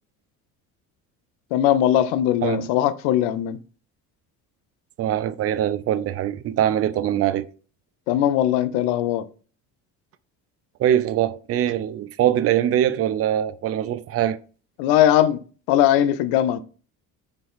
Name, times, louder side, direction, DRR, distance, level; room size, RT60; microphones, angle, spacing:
voice 1, 1.5-3.6 8.1-9.2 14.8-15.4 15.7-16.6, left 11 dB, 65° left, 0.6 m, -20 dB
voice 2, 2.4-2.7 5.0-7.5 10.8-14.4, right 11 dB, 35° right, 0.4 m, -22 dB
4.3 x 3.1 x 3.6 m
hypercardioid pair, 55°, 44 cm